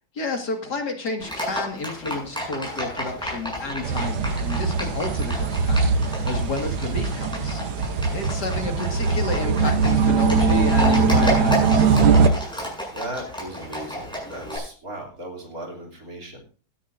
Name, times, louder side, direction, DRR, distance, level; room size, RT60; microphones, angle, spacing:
voice 1, 0.1-12.0, left 3 dB, 55° left, 3 dB, 2.6 m, -31 dB
Livestock farm animals working animals, 1.2-14.6, equal, ahead, 7.8 m, -32 dB
sound 1, 3.8-12.3, right 4 dB, 85° right, 1.9 m, -21 dB
voice 2, 12.9-16.4, right 1 dB, 45° right, 0 dB, 3.6 m, -37 dB
17.0 x 13.0 x 2.7 m, 0.39 s
omnidirectional pair, 2.2 m